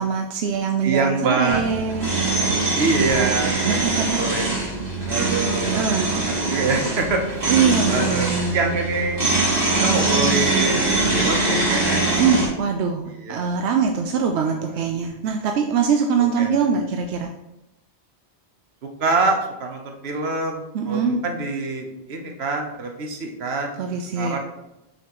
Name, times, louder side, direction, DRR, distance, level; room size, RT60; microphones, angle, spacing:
voice 1, 0.0-2.1 2.8-4.2 5.6-6.1 7.5-8.8 12.1-17.3 20.7-21.2 23.8-24.4, right 6 dB, 90° right, 4 dB, 0.9 m, -23 dB
voice 2, 0.8-1.6 2.7-4.6 5.0-7.5 7.9-9.2 9.7-12.0 13.2-13.4 14.3-14.6 16.2-16.8 19.0-24.4, right 3 dB, 75° right, 3 dB, 1.2 m, -25 dB
sound 1, 1.5-12.5, right 3 dB, 55° right, 2.3 m, -22 dB
5.9 x 5.6 x 3.0 m, 0.93 s
omnidirectional pair, 1.1 m